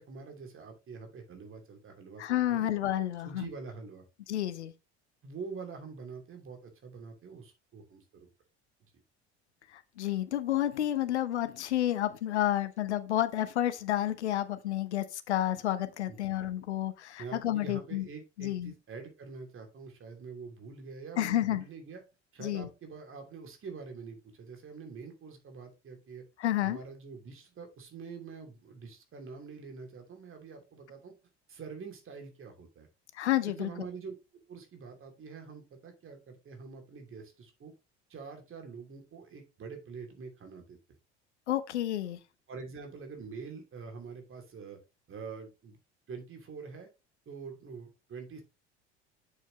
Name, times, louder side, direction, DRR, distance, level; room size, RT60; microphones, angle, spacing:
voice 1, 0.0-2.7 3.2-4.0 5.2-8.3 8.8-8.9 16.1-16.2 17.2-22.0 22.3-26.2 26.6-31.1 31.5-32.9 33.5-34.1 34.5-37.7 38.1-40.8 42.5-44.8 45.1-45.8 46.1-46.9 47.3-48.4, right 5 dB, 35° right, 2.9 m, -45 dB
voice 2, 2.2-3.5 4.3-4.7 9.7-18.0 18.4-18.7 21.2-21.6 22.4-22.7 26.4-26.8 33.1-33.7 41.5-42.2, left 12 dB, 80° left, 0.9 m, -30 dB
7.8 x 7.3 x 3.1 m
figure-of-eight pair, 65°, 34 cm